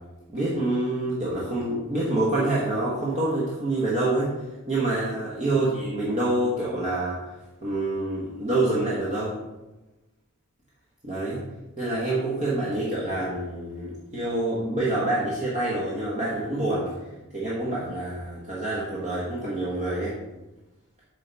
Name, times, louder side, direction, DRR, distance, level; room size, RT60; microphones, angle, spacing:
voice 1, 0.3-4.3 4.7-7.2 7.6-9.4 11.0-11.4 11.8-16.9 17.3-20.1, right 2 dB, 35° right, -7 dB, 1.2 m, -26 dB
8.2 x 3.4 x 4.0 m, 1.1 s
head